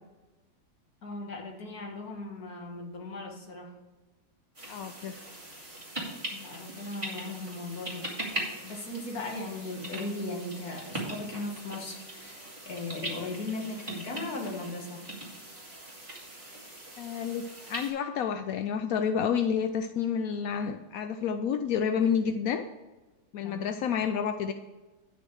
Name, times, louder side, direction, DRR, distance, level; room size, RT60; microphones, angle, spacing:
voice 1, 1.0-3.8 6.3-8.4 8.6-15.1 23.4-23.8, left 2 dB, 50° left, 0 dB, 2.2 m, -38 dB
sound 1, 4.5-17.9, right 1 dB, 15° right, 2.7 m, -40 dB
voice 2, 4.7-5.2 17.0-22.6 23.3-24.5, left 7 dB, 80° left, 8 dB, 0.7 m, -29 dB
10.5 x 6.2 x 4.8 m, 1.2 s
omnidirectional pair, 2.1 m